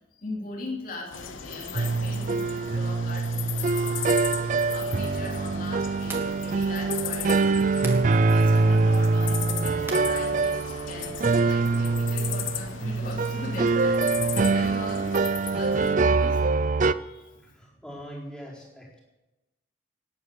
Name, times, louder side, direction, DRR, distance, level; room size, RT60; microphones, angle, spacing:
voice 1, 0.1-4.3 4.7-7.6 8.1-14.1 14.5-16.6 16.9-17.6, left 2 dB, 45° left, -2 dB, 3.3 m, -40 dB
sound 1, 1.1-15.9, left 8 dB, 85° left, 1.0 m, -37 dB
sound 2, 1.7-16.9, right 3 dB, 40° right, 0.4 m, -24 dB
sound 3, 5.4-11.1, right 2 dB, 15° right, 2.0 m, -45 dB
voice 2, 17.4-19.0, equal, 5° left, -5 dB, 4.1 m, -42 dB
18.5 x 8.9 x 6.8 m, 1.1 s
head